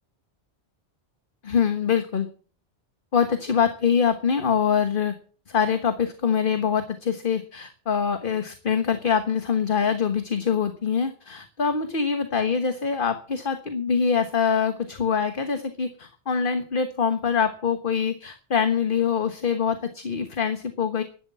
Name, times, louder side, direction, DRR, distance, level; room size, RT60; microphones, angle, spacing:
voice 1, 1.4-2.3 3.1-5.1 5.5-21.0, left 6 dB, 55° left, 8 dB, 1.4 m, -24 dB
11.5 x 11.0 x 7.4 m, 0.41 s
omnidirectional pair, 1.1 m